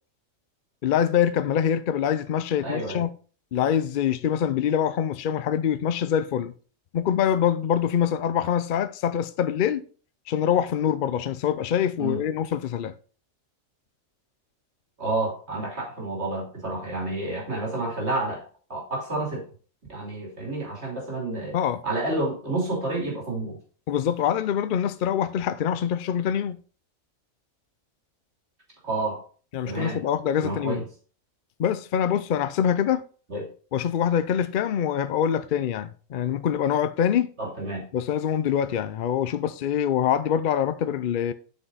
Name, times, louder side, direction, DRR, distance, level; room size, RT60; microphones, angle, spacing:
voice 1, 0.8-3.1 3.5-6.5 6.9-9.8 10.3-12.9 21.5-21.8 23.9-26.6 29.5-30.8 31.6-33.0 33.7-37.3 37.9-41.3, left 9 dB, 70° left, 0.5 m, -24 dB
voice 2, 2.6-3.0 12.0-12.2 15.0-18.4 18.7-19.4 19.9-21.6 21.8-23.6 28.8-29.2 29.6-30.0 30.4-30.8 33.3-33.5 37.4-37.8, right 2 dB, 50° right, 3.3 m, -29 dB
8.0 x 6.0 x 4.0 m
omnidirectional pair, 1.4 m